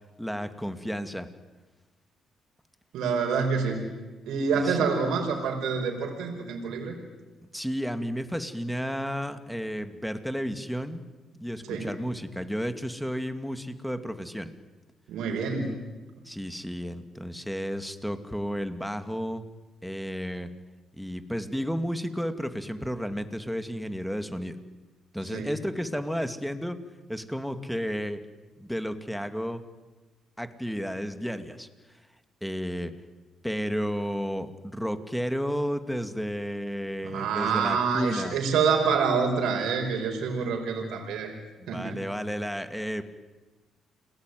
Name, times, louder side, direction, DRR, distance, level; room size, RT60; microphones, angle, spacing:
voice 1, 0.2-1.3 4.5-4.8 7.5-11.0 11.4-14.5 16.2-19.4 19.8-20.5 21.0-24.6 25.1-26.8 27.1-28.2 28.6-29.6 30.4-32.0 32.4-32.9 33.4-38.4 41.6-43.0, equal, ahead, 9 dB, 2.4 m, -32 dB
voice 2, 2.9-3.8 4.2-7.0 11.7-11.9 15.1-15.8 25.3-25.5 37.0-41.3 41.7-42.0, right 5 dB, 85° right, 3 dB, 4.9 m, -27 dB
29.5 x 21.0 x 9.4 m, 1.2 s
cardioid pair, 90°, 0 cm